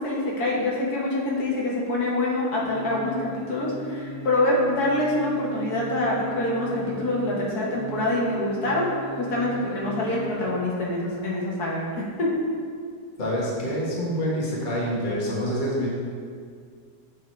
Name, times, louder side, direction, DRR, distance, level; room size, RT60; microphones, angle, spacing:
voice 1, 0.0-8.9 9.2-12.3, left 1 dB, 70° left, -5 dB, 1.8 m, -25 dB
sound 1, 2.6-10.5 10.8-10.9, right 2 dB, 40° right, 0.7 m, -39 dB
voice 2, 13.2-15.9, equal, 30° left, -5 dB, 1.3 m, -26 dB
7.3 x 3.7 x 4.4 m, 2.1 s
omnidirectional pair, 1.8 m